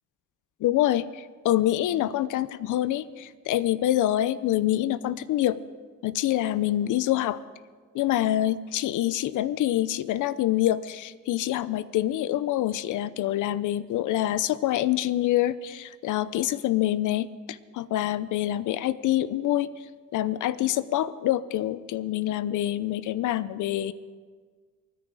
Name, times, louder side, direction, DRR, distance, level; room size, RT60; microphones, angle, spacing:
voice 1, 0.6-5.6 6.0-7.4 7.9-19.7 20.1-23.9, left 13 dB, 80° left, 16 dB, 0.7 m, -26 dB
27.5 x 10.0 x 4.9 m, 1.5 s
cardioid pair, 90°, 30 cm